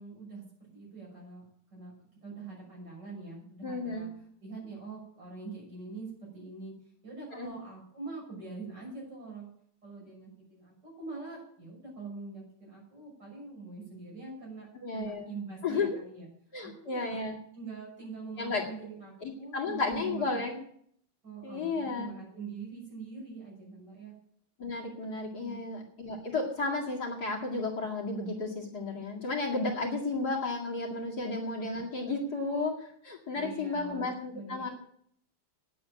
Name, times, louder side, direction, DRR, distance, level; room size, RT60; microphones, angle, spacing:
voice 1, 0.0-1.4 1.7-1.9 2.2-4.1 4.4-6.7 7.0-9.5 9.8-14.7 14.9-16.3 16.6-17.2 17.5-20.6 21.2-24.1 25.4-25.6 33.3-34.7, right 4 dB, 55° right, -3 dB, 7.3 m, -44 dB
voice 2, 3.6-4.1 7.4-7.5 14.8-15.3 15.6-16.0 16.5-17.4 18.4-18.6 19.2-20.5 21.4-22.1 24.6-34.7, left 3 dB, 50° left, -2 dB, 2.6 m, -33 dB
9.8 x 8.4 x 8.9 m, 0.64 s
omnidirectional pair, 2.3 m